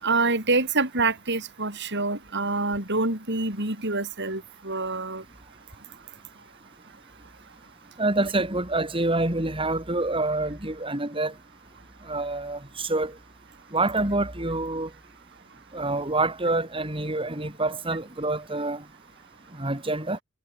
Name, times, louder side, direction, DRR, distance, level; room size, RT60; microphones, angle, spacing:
voice 1, 0.0-5.2, right 3 dB, 50° right, 7.4 m, -26 dB
voice 2, 8.0-11.3 12.1-13.1 13.7-14.9 15.7-18.8 19.6-20.2, right 2 dB, 25° right, 3.7 m, -27 dB
head